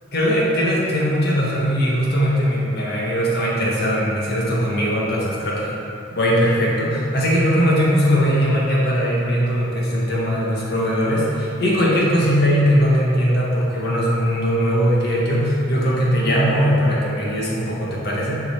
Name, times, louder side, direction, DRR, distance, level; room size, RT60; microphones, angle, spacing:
voice 1, 0.1-5.7 6.1-18.4, equal, 55° left, -5 dB, 1.7 m, -20 dB
7.4 x 5.7 x 4.5 m, 2.7 s
head